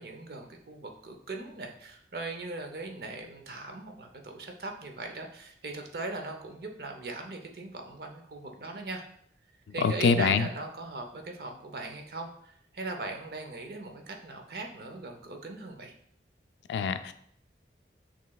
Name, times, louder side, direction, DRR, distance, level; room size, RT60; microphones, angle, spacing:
voice 1, 0.0-9.0 9.7-15.9, right 2 dB, 60° right, 4 dB, 0.6 m, -39 dB
voice 2, 9.8-10.5 16.7-17.1, left 5 dB, 80° left, 11 dB, 0.3 m, -25 dB
6.0 x 3.1 x 2.3 m, 0.66 s
head